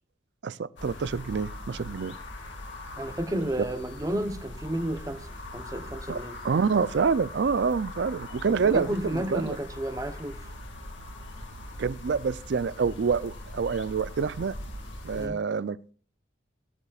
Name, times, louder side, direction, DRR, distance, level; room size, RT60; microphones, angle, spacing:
voice 1, 0.4-2.2 3.6-3.7 6.1-6.2 6.4-9.6 11.8-14.5 15.0-15.9, right 5 dB, 60° right, 19 dB, 0.4 m, -27 dB
sound 1, 0.8-15.3, left 1 dB, 70° left, 2.0 m, -41 dB
voice 2, 3.0-5.3 5.5-6.3 8.5-10.4 15.1-15.4, right 1 dB, 15° right, 9 dB, 0.8 m, -32 dB
18.5 x 9.8 x 2.4 m, 0.40 s
head